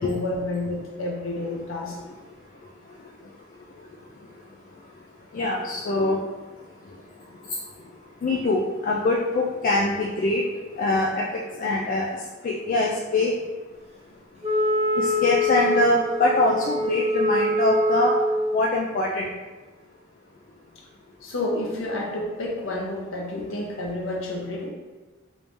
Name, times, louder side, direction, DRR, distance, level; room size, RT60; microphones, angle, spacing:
voice 1, 0.0-2.0 21.2-24.7, left 2 dB, 85° left, -2 dB, 0.8 m, -30 dB
voice 2, 5.3-6.2 8.2-10.4 10.8-11.2 11.6-12.1 12.4-13.3 15.0-18.1 18.5-19.3, left 2 dB, 45° left, -3 dB, 0.3 m, -23 dB
Wind instrument woodwind instrument, 14.4-18.6, left 1 dB, 35° right, 0.7 m, -24 dB
3.2 x 2.7 x 3.3 m, 1.2 s
head